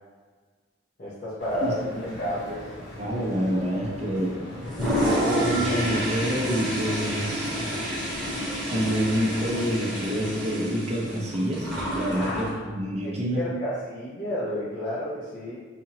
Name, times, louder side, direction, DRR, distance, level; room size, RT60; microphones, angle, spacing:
voice 1, 1.0-2.6 12.1-12.7 13.0-15.6, left 1 dB, 50° left, -11 dB, 0.9 m, -31 dB
sound 1, 1.4-9.6, equal, 85° left, 1.2 m, -41 dB
voice 2, 3.0-4.4 5.1-7.7 8.7-11.7 12.0-13.5, equal, 35° right, -2 dB, 0.6 m, -27 dB
Toilet flush, 4.6-12.5, equal, 5° left, 1.1 m, -28 dB
4.2 x 2.9 x 2.8 m, 1.4 s
head